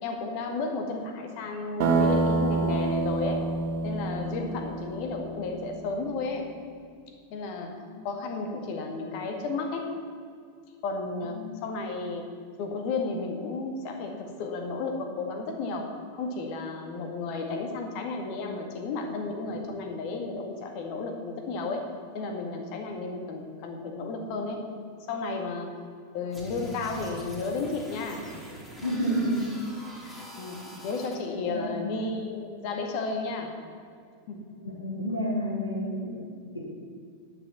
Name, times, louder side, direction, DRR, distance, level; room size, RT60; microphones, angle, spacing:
voice 1, 0.0-3.4 3.8-6.5 7.3-9.9 10.8-12.3 12.6-21.8 22.1-24.6 25.1-25.8 26.1-28.3 28.9-29.2 30.0-33.6 34.3-34.5, left 3 dB, 45° left, 3 dB, 1.9 m, -33 dB
sound 1, 1.8-5.6, right 3 dB, 45° right, 1.6 m, -27 dB
sound 2, 26.3-31.2, right 2 dB, 10° left, 3.1 m, -44 dB
voice 2, 28.8-29.5 30.8-30.9 31.5-31.9 34.6-36.6, equal, 80° left, -4 dB, 3.2 m, -30 dB
11.0 x 7.1 x 7.3 m, 2.2 s
figure-of-eight pair, 90°, 0 cm